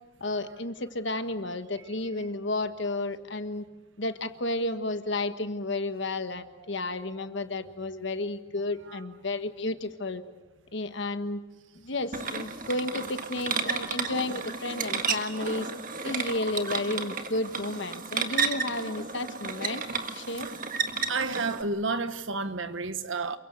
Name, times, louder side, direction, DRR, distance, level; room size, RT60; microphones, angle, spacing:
voice 1, 0.2-3.6 4.0-10.2 10.7-11.4 11.7-15.7 16.0-19.8 20.1-20.5, left 2 dB, 60° left, 10 dB, 1.4 m, -32 dB
sound 1, 12.1-21.6, right 5 dB, 40° right, 1.7 m, -32 dB
voice 2, 21.1-23.4, right 3 dB, 70° right, 11 dB, 1.4 m, -30 dB
28.0 x 23.5 x 8.1 m, 1.2 s
head